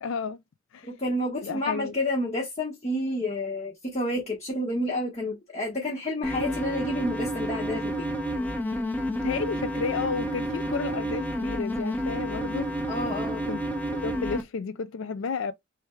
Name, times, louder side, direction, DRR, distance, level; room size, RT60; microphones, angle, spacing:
voice 1, 0.0-0.4 0.7-0.9 1.4-1.9 9.1-12.7 13.5-13.6 13.9-15.5, left 5 dB, 65° left, 0.4 m, -32 dB
voice 2, 0.8-8.1 12.9-13.4, left 1 dB, 30° left, 1.1 m, -30 dB
sound 1, 6.2-14.4, equal, 10° left, 0.7 m, -30 dB
3.5 x 3.1 x 4.4 m
head